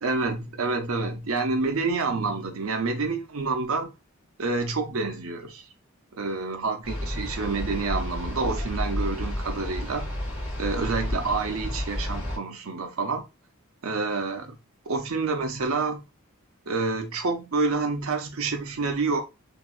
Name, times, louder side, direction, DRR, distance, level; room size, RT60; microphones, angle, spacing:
voice 1, 0.0-3.9 4.4-5.7 6.2-10.1 10.6-13.3 13.8-14.6 14.9-16.0 16.7-19.2, right 3 dB, 70° right, 0.6 m, -28 dB
sound 1, 6.8-12.4, left 1 dB, 5° right, 1.6 m, -31 dB
3.3 x 2.6 x 2.4 m
head